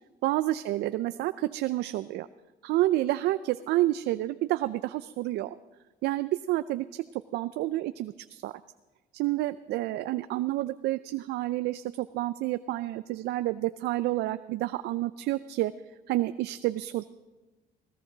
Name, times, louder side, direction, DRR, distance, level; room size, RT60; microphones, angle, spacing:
voice 1, 0.2-2.3 2.6-5.5 6.0-8.6 9.1-15.7 16.1-17.0, right 16 dB, 80° right, 12 dB, 0.5 m, -29 dB
20.0 x 18.0 x 4.0 m, 1.2 s
cardioid pair, 110°, 17 cm